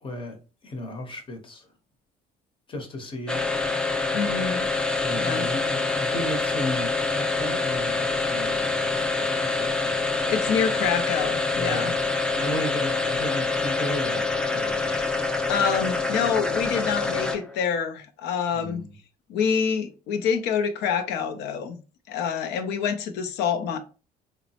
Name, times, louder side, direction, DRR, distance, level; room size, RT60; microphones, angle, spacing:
voice 1, 0.0-0.4 0.6-1.7 2.7-3.5 5.0-10.0 11.5-11.9 12.3-15.0 18.5-18.9, left 1 dB, 30° left, 0.8 m, -34 dB
sound 1, 3.3-17.6, left 3 dB, 5° left, 0.4 m, -26 dB
voice 2, 4.1-4.7 5.2-5.5 10.3-12.0 14.8-15.2 15.5-18.8 19.3-21.8 22.1-23.8, left 7 dB, 80° left, 0.5 m, -27 dB
3.0 x 2.0 x 2.7 m
cardioid pair, 110°, 17 cm